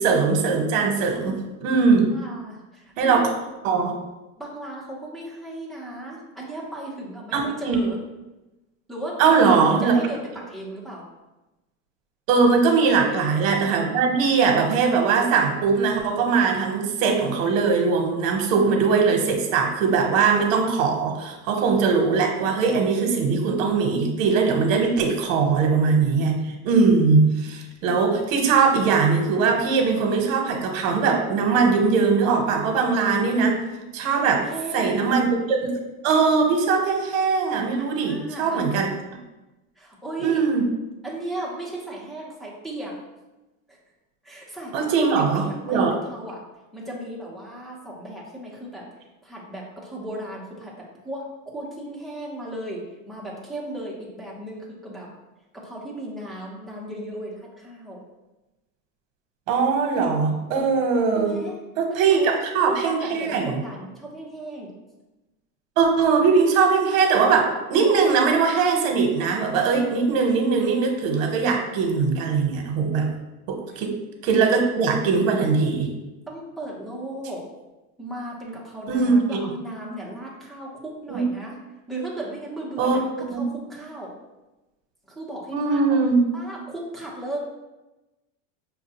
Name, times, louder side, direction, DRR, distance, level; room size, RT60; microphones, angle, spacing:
voice 1, 0.0-2.1 3.0-3.3 3.6-3.9 7.3-7.8 9.2-9.9 12.3-26.4 26.6-33.6 33.9-34.4 34.7-35.7 36.0-38.9 40.2-40.6 44.7-45.9 59.5-61.3 61.8-63.6 65.8-73.1 73.5-73.9 74.2-75.9 78.9-79.4 81.1-81.2 82.8-83.0 83.3-83.4 85.5-86.2, right 5 dB, 75° right, 3 dB, 1.0 m, -21 dB
voice 2, 2.1-3.4 4.4-8.0 8.9-11.0 12.8-13.0 34.1-35.0 37.8-38.6 39.8-40.5 41.0-42.9 43.7-43.8 44.2-45.0 45.3-45.8 46.1-46.4 46.7-48.8 49.2-50.7 51.0-52.8 53.1-55.1 55.5-58.0 61.1-61.6 62.1-62.3 62.7-64.7 76.3-77.4 78.0-81.6 81.9-83.1 83.3-84.1 85.1-86.0 86.3-87.4, right 1 dB, ahead, -6 dB, 0.9 m, -35 dB
5.7 x 2.3 x 2.9 m, 1.0 s
supercardioid pair, 125°, 40 cm